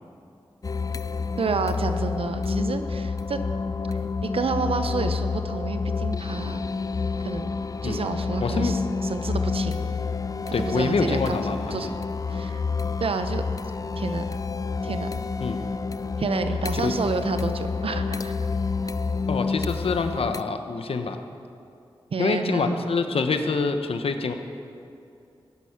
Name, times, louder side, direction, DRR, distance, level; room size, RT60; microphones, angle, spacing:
sound 1, 0.6-20.4, left 4 dB, 40° left, 0.4 m, -29 dB
voice 1, 1.4-3.4 3.9-6.6 7.2-7.6 7.8-9.9 10.5-11.4 11.7-11.9 12.3-12.6 13.0-13.4 14.0-14.2 14.8-15.2 16.2-18.3 22.1-22.9, right 4 dB, 80° right, 8 dB, 0.9 m, -29 dB
voice 2, 8.4-8.8 10.5-11.8 15.4-15.7 16.8-16.9 19.3-21.2 22.2-24.3, left 4 dB, 80° left, 7 dB, 1.0 m, -26 dB
15.5 x 11.0 x 5.9 m, 2.6 s
cardioid pair, 45°, 10 cm